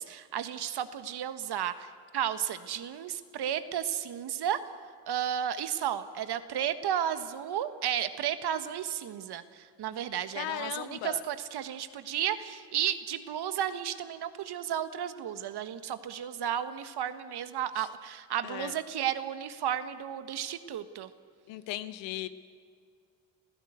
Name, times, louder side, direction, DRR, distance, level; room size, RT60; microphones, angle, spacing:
voice 1, 0.0-4.6 5.1-21.1, right 10 dB, 60° right, 11 dB, 1.5 m, -33 dB
voice 2, 10.3-11.2 17.8-17.9 18.4-18.7 21.5-22.3, left 14 dB, 75° left, 12 dB, 1.2 m, -37 dB
28.0 x 15.5 x 8.1 m, 2.2 s
hypercardioid pair, 55°, 45 cm